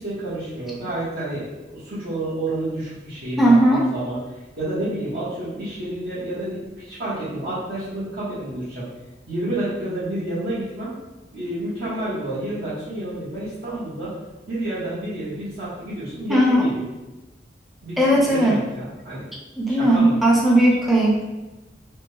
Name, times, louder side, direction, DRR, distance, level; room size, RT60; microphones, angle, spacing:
voice 1, 0.0-8.9 9.3-10.9 11.3-14.1 14.5-16.9 17.8-19.3 19.7-20.2, right 1 dB, 70° right, -14 dB, 1.2 m, -29 dB
voice 2, 3.4-3.9 16.3-16.6 18.0-18.6 19.6-21.2, right 1 dB, ahead, -4 dB, 0.5 m, -17 dB
3.4 x 2.2 x 3.2 m, 1.1 s
head